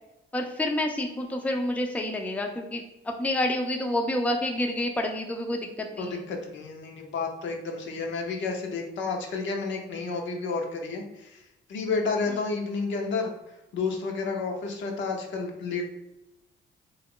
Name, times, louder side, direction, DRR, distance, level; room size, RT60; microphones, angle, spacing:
voice 1, 0.3-6.1, left 1 dB, 5° left, 3 dB, 0.4 m, -28 dB
voice 2, 6.0-11.4 11.7-13.3 13.7-15.9, left 4 dB, 70° left, 2 dB, 0.7 m, -31 dB
3.0 x 2.3 x 3.6 m, 0.94 s
cardioid pair, 90°, 20 cm